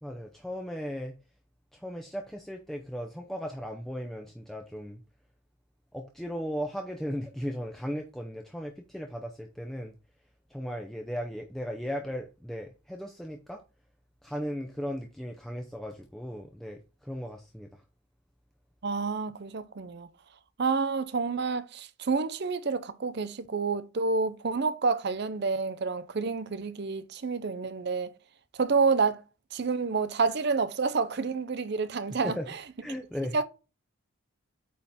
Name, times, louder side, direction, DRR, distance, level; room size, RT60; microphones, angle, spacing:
voice 1, 0.0-1.1 1.7-5.0 5.9-10.0 10.5-13.6 14.2-17.8 32.2-32.5 32.8-33.4, equal, ahead, 0.5 m, -36 dB
voice 2, 18.8-20.1 20.6-28.1 28.5-29.2 29.5-32.6 33.3-33.4, right 4 dB, 50° right, 0.5 m, -29 dB
8.5 x 3.7 x 4.1 m
head